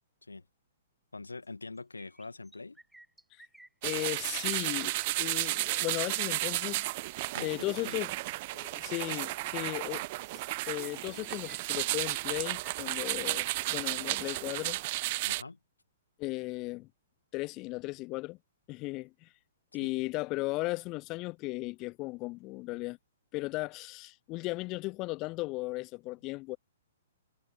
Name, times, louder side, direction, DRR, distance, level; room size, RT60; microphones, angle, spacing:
voice 1, 1.1-2.8 7.3-7.9 15.2-15.6 19.8-19.9, left 3 dB, 75° left, 2.3 m, -44 dB
sound 1, 1.8-7.3 9.9-10.0 10.3-13.2, right 1 dB, 5° right, 7.5 m, -56 dB
voice 2, 3.8-7.0 7.4-8.1 8.5-10.0 10.7-14.8 15.2-15.3 16.2-16.9 17.3-18.4 18.7-19.3 19.7-23.0 23.3-26.6, left 22 dB, 30° left, 0.8 m, -36 dB
sound 2, 3.8-15.4, right 20 dB, 40° right, 0.9 m, -33 dB
figure-of-eight pair, 115°, 0 cm